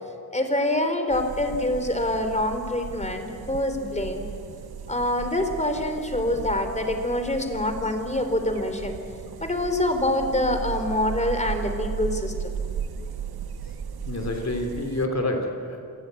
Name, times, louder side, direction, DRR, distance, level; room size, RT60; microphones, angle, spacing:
voice 1, 0.3-4.2 4.9-9.0 9.4-12.3, left 1 dB, 20° left, 6 dB, 3.3 m, -25 dB
sound 1, 1.1-15.1, right 7 dB, 85° right, 1.1 m, -36 dB
voice 2, 14.1-15.8, left 1 dB, 45° left, 3 dB, 3.3 m, -28 dB
27.0 x 17.0 x 8.3 m, 2.5 s
wide cardioid pair, 80°, 36 cm